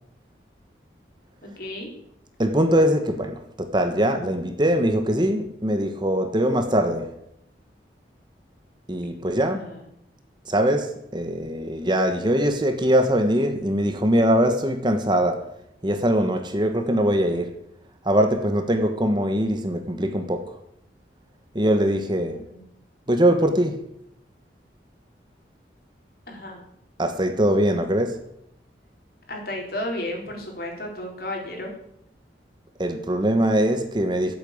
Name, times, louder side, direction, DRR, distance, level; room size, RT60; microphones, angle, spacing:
voice 1, 1.4-1.9 9.5-9.9 22.3-22.6 26.3-26.6 29.3-31.7, left 1 dB, 55° left, 4.1 m, -33 dB
voice 2, 2.4-7.1 8.9-9.7 10.5-15.4 15.8-17.5 18.0-20.5 21.5-22.4 23.1-23.8 27.0-28.2 32.8-34.3, equal, 25° right, 1.3 m, -22 dB
13.0 x 8.6 x 8.7 m
head